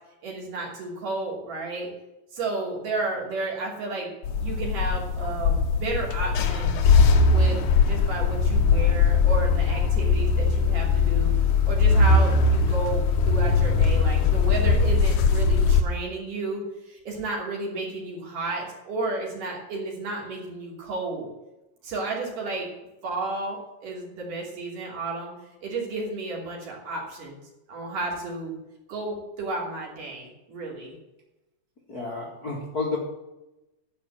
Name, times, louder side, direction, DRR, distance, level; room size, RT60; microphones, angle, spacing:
voice 1, 0.2-1.9 2.3-4.1 4.4-6.8 7.3-7.6 7.9-11.3 11.7-21.3 21.8-22.7 23.0-25.3 25.6-27.4 27.7-28.6 28.9-30.9, right 2 dB, 55° right, -3 dB, 4.3 m, -32 dB
sound 1, 4.2-15.8, left 4 dB, 70° left, 1.8 m, -20 dB
voice 2, 31.9-33.0, left 3 dB, 35° left, -4 dB, 1.6 m, -30 dB
11.5 x 5.0 x 8.6 m, 0.96 s
omnidirectional pair, 4.5 m